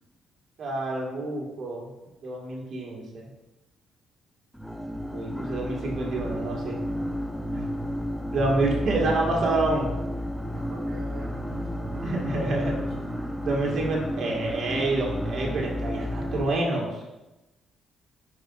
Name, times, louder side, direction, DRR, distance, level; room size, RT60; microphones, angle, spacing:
voice 1, 0.6-1.9 2.2-3.3 5.1-6.8 7.5-7.7 8.3-9.9 12.0-12.7 13.4-17.0, right 2 dB, 65° right, -2 dB, 1.7 m, -28 dB
sound 1, 4.5-16.5, equal, ahead, 0.6 m, -31 dB
voice 2, 10.5-13.1, right 3 dB, 85° right, -4 dB, 1.5 m, -42 dB
8.8 x 4.8 x 2.4 m, 1.0 s
cardioid pair, 90°, 0 cm